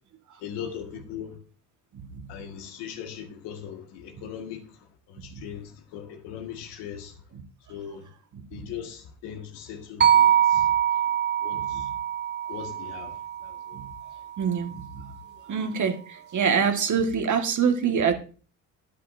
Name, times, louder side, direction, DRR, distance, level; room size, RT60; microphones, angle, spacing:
voice 1, 0.4-1.4 2.3-4.6 5.2-7.1 7.7-8.0 8.5-10.6 11.4-11.9 12.5-13.2 13.7-13.8, left 8 dB, 75° left, 1.9 m, -39 dB
sound 1, 10.0-14.2, right 10 dB, 25° right, 0.6 m, -24 dB
voice 2, 14.4-15.1 15.5-18.1, right 6 dB, 45° right, 1.8 m, -25 dB
11.5 x 10.5 x 2.7 m
supercardioid pair, 75°, 42 cm